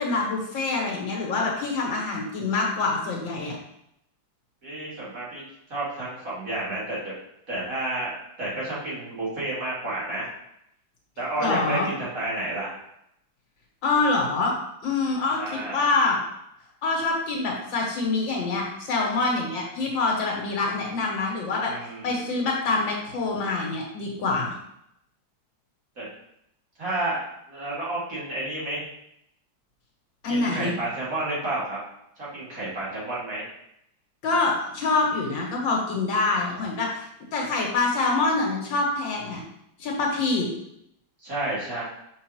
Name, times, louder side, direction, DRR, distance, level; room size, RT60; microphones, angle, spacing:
voice 1, 0.0-3.6 11.4-11.9 13.8-14.5 14.8-16.2 16.8-21.7 22.0-24.5 30.2-30.7 34.2-37.0 37.3-39.4 39.8-40.5, left 3 dB, 80° left, -1 dB, 2.0 m, -25 dB
voice 2, 4.6-5.4 5.7-7.1 7.5-10.3 11.2-12.8 15.4-15.8 21.6-22.4 26.0-26.1 26.8-27.2 27.5-28.8 30.3-31.8 32.2-33.4 41.2-41.8, right 2 dB, 45° right, -8 dB, 2.6 m, -31 dB
6.4 x 5.3 x 2.9 m, 0.77 s
omnidirectional pair, 2.1 m